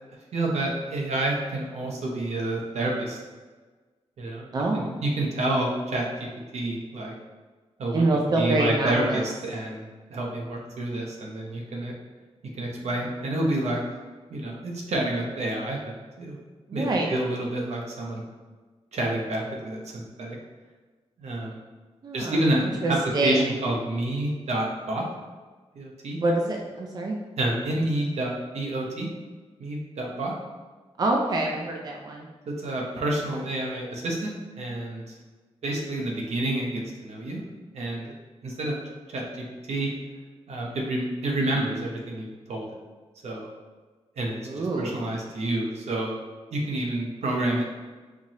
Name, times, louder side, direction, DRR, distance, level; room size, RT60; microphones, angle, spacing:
voice 1, 0.3-3.2 4.2-4.5 4.7-6.3 6.5-7.1 7.8-8.0 8.4-11.9 12.6-13.8 14.3-16.4 16.7-18.2 18.9-20.4 21.2-21.6 22.1-23.0 23.2-25.1 25.7-26.2 27.4-29.1 29.6-30.3 32.5-35.1 35.6-37.4 37.7-38.1 38.4-38.8 39.1-39.9 40.5-42.7 43.2-43.5 44.2-46.2 46.5-47.7, right 1 dB, 80° right, -1 dB, 0.7 m, -29 dB
voice 2, 4.5-5.0 7.9-9.3 16.7-17.1 22.0-22.4 22.8-23.5 26.2-27.1 31.0-32.3 44.4-45.1, right 2 dB, 35° right, 0 dB, 0.4 m, -26 dB
4.5 x 2.9 x 2.8 m, 1.3 s
wide cardioid pair, 155°, 11 cm